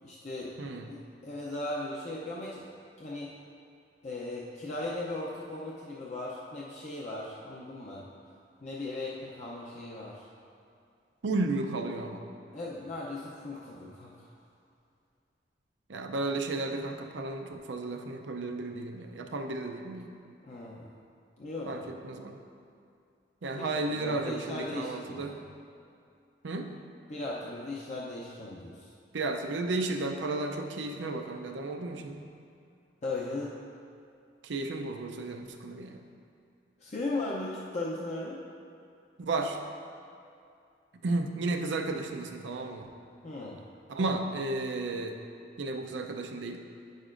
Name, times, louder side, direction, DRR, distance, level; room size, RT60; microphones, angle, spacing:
voice 1, 0.0-2.7 3.0-3.3 4.0-8.0 8.6-10.3 12.5-14.3 20.4-20.9 21.4-21.9 23.6-25.4 27.1-28.9 33.0-33.5 36.8-38.4 43.2-43.6, left 2 dB, 40° left, -5 dB, 0.6 m, -37 dB
voice 2, 0.6-0.9 11.2-12.2 15.9-20.1 21.7-22.4 23.4-25.4 26.4-26.7 29.1-32.2 34.4-36.0 39.2-39.6 41.0-42.8 43.9-45.2 45.6-46.6, right 2 dB, 85° right, 4 dB, 0.5 m, -33 dB
9.1 x 6.5 x 2.5 m, 2.4 s
head